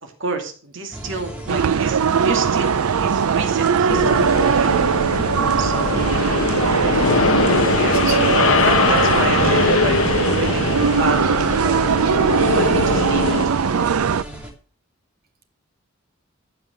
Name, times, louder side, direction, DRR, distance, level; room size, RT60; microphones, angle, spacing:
voice 1, 0.0-4.7 5.6-6.0 7.7-12.0 12.5-14.0, right 3 dB, 60° right, 4 dB, 2.4 m, -29 dB
sound 1, 0.9-14.5, right 1 dB, 5° right, 2.6 m, -35 dB
sound 2, 1.5-14.2, right 6 dB, 85° right, 0.5 m, -20 dB
sound 3, 3.9-13.5, left 4 dB, 70° left, 1.1 m, -21 dB
voice 2, 7.7-9.1 9.4-9.9, right 2 dB, 45° right, 7 dB, 2.0 m, -32 dB
15.5 x 5.8 x 6.4 m, 0.40 s
head